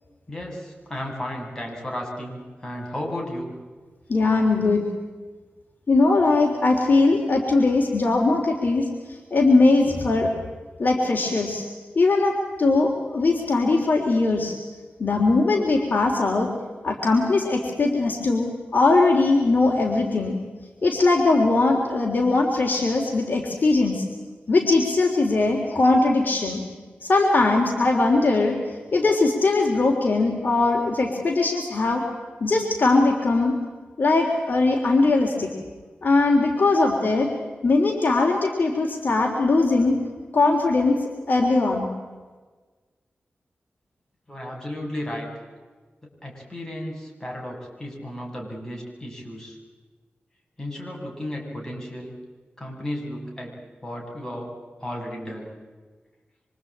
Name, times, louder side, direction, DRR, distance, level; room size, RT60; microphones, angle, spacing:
voice 1, 0.3-3.5 44.3-45.3 46.2-49.6 50.6-52.1 52.6-53.6 53.8-54.5 54.8-55.6, left 1 dB, 15° left, -2 dB, 7.9 m, -34 dB
voice 2, 4.1-4.9 5.9-10.3 10.8-11.7 12.0-14.6 15.0-16.5 16.8-20.4 20.8-24.0 24.5-26.6 27.0-28.6 28.9-32.0 32.4-33.6 34.0-35.5 36.0-37.3 37.6-40.0 40.3-41.9, left 3 dB, 50° left, 1 dB, 3.5 m, -20 dB
26.0 x 25.0 x 8.8 m, 1.4 s
wide cardioid pair, 115°, 4 cm